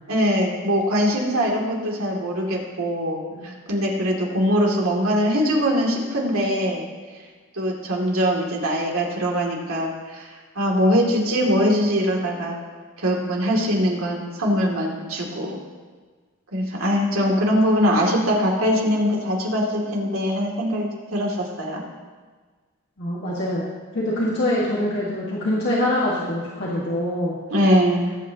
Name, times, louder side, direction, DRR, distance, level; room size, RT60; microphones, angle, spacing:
voice 1, 0.1-6.9 7.6-10.3 10.5-12.6 13.0-15.6 16.5-21.8 27.5-28.2, equal, 80° right, -2 dB, 2.7 m, -22 dB
voice 2, 23.0-23.6 23.9-27.4, left 1 dB, 50° left, -6 dB, 1.8 m, -24 dB
20.5 x 9.2 x 3.0 m, 1.4 s
head